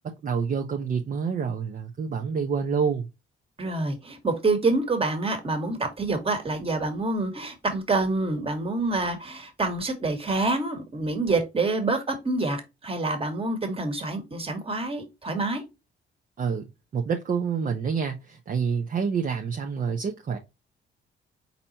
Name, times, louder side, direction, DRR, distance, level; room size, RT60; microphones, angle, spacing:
voice 1, 0.2-3.1 16.4-16.7 16.9-20.4, right 6 dB, 45° right, 0.8 m, -27 dB
voice 2, 3.6-15.6, right 3 dB, 30° right, 1.7 m, -27 dB
4.2 x 4.1 x 2.8 m
cardioid pair, 90°, 20 cm